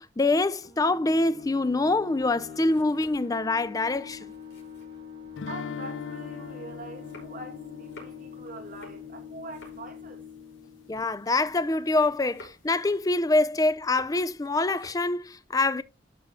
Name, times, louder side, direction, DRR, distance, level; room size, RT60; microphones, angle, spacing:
voice 1, 0.0-4.3 10.9-15.8, left 2 dB, 20° left, 0.4 m, -25 dB
sound 1, 0.6-11.9, left 7 dB, 70° right, 5.3 m, -45 dB
sound 2, 2.4-5.5 6.0-11.8 12.0-14.4 14.6-15.1, left 1 dB, 65° left, 4.5 m, -54 dB
sound 3, 5.4-10.3, left 5 dB, 90° left, 0.5 m, -41 dB
voice 2, 5.5-10.2, right 3 dB, 45° right, 2.3 m, -44 dB
12.0 x 4.7 x 3.7 m
head